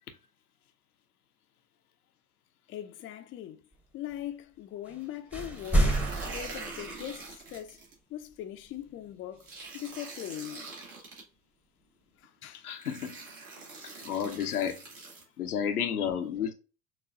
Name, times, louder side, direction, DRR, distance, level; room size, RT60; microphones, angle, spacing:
voice 1, 2.7-3.6 3.9-7.8 8.1-11.1 12.4-12.7 13.8-14.0, left 11 dB, 30° left, 0.5 m, -41 dB
sound 1, 4.8-5.0 5.3-7.4, right 1 dB, 5° right, 0.9 m, -29 dB
sound 2, 5.4-7.9 9.4-11.2 12.2-12.3 12.8-15.2, right 3 dB, 65° right, 2.0 m, -44 dB
voice 2, 12.6-13.2 14.0-14.8 15.4-16.5, left 8 dB, 80° left, 0.7 m, -31 dB
5.9 x 2.4 x 2.5 m
figure-of-eight pair, 70°, 44 cm